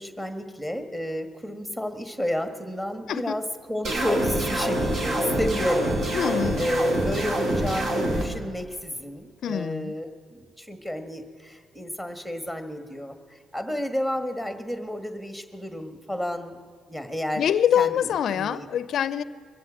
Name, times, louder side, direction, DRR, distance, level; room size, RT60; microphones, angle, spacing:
voice 1, 0.0-16.6 16.9-17.4 17.7-18.7, equal, 5° right, 8 dB, 1.5 m, -31 dB
sound 1, 3.8-8.2, right 1 dB, 60° right, 2.7 m, -26 dB
voice 2, 6.1-6.7 9.4-9.9 17.4-19.2, left 9 dB, 65° left, 16 dB, 0.5 m, -25 dB
22.5 x 7.9 x 7.5 m, 2.2 s
cardioid pair, 90°, 0 cm